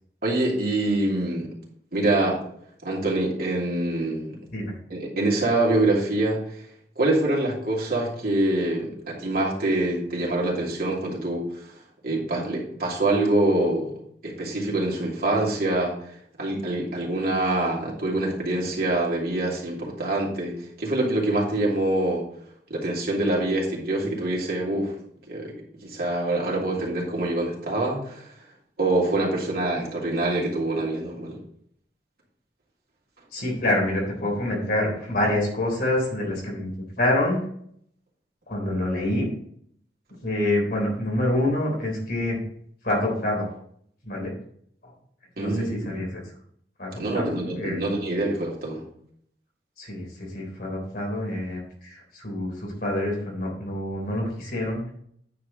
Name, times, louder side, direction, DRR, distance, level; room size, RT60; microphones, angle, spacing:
voice 1, 0.2-1.5 1.9-2.4 2.8-4.4 4.9-6.4 7.0-11.5 12.0-16.0 16.4-22.2 22.7-24.9 25.3-25.6 25.8-28.3 28.8-31.4 45.4-46.0 47.0-48.9, right 2 dB, 55° right, -3 dB, 2.9 m, -25 dB
voice 2, 33.3-36.7 37.0-37.4 38.5-39.3 40.2-42.4 42.8-43.5 44.0-44.3 44.8-44.9 45.4-46.2 46.8-47.2 47.5-47.8 49.8-54.8, left 1 dB, 55° left, -2 dB, 3.7 m, -26 dB
9.4 x 5.0 x 5.0 m, 0.65 s
head